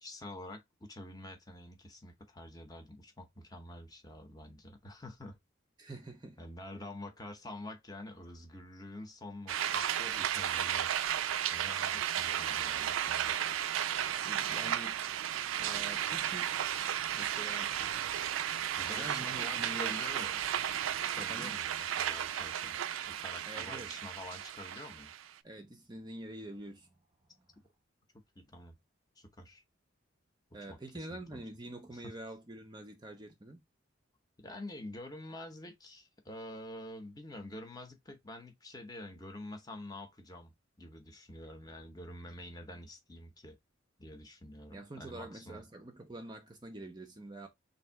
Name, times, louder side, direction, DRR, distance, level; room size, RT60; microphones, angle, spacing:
voice 1, 0.0-5.4 6.4-11.1 11.5-13.4 17.8-17.9 18.8-20.4 21.0-22.8 23.1-25.1 28.4-28.7 29.2-29.6 30.5-31.4 31.9-32.2 34.4-43.6 44.0-45.6, left 1 dB, 20° left, 0.8 m, -47 dB
voice 2, 5.8-6.4 14.2-15.0 15.6-16.6 17.1-17.7 18.9-20.0 21.2-21.5 23.4-23.9 25.4-26.9 30.5-33.6 44.7-47.5, right 1 dB, 20° right, 0.5 m, -46 dB
sound 1, 9.5-25.3, right 10 dB, 80° right, 0.4 m, -34 dB
3.3 x 2.6 x 4.4 m
head